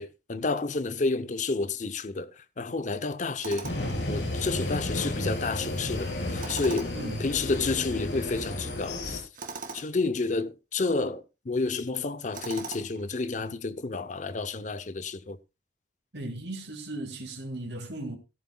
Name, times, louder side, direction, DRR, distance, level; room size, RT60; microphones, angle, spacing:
voice 1, 0.0-3.7 4.1-6.9 7.2-9.3 9.7-15.4, left 3 dB, 45° left, 0.7 m, -30 dB
Tools, 3.4-4.0 6.4-7.1 9.3-9.9 12.3-13.0, right 4 dB, 50° right, 1.9 m, -39 dB
sound 1, 3.6-9.2, left 1 dB, 75° left, 4.0 m, -32 dB
voice 2, 6.9-7.2 16.1-18.2, right 1 dB, 75° right, 2.2 m, -36 dB
14.5 x 13.0 x 2.3 m
head